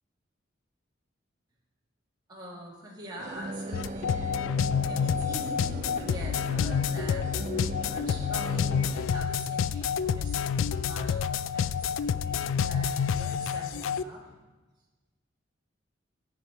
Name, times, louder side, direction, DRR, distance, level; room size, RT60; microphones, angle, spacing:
voice 1, 2.3-4.3 4.8-14.3, right 1 dB, 20° right, -5 dB, 2.0 m, -45 dB
sound 1, 3.2-9.1, right 2 dB, 35° right, 0.3 m, -40 dB
sound 2, 3.7-14.0, left 7 dB, 85° left, 0.3 m, -28 dB
8.1 x 7.0 x 4.5 m, 1.2 s
head